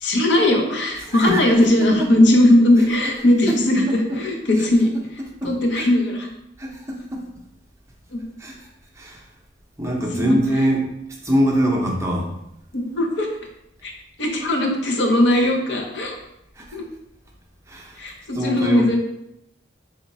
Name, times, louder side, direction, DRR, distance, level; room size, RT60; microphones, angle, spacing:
voice 1, 0.0-6.3 8.1-8.2 10.1-10.4 12.7-13.3 13.8-13.9 14.2-16.2 16.7-16.9 18.0-19.0, left 1 dB, 65° left, 2 dB, 0.7 m, -19 dB
voice 2, 1.0-1.4 2.0-2.1 3.5-3.6 3.9-4.2 4.6-4.7 5.4-5.9 6.6-7.2 8.4-8.7 9.0-9.2 9.8-10.8 11.2-12.3 16.6-16.8 17.7-18.0 18.3-19.0, equal, 15° right, -1 dB, 0.6 m, -23 dB
3.4 x 2.4 x 4.1 m, 0.81 s
head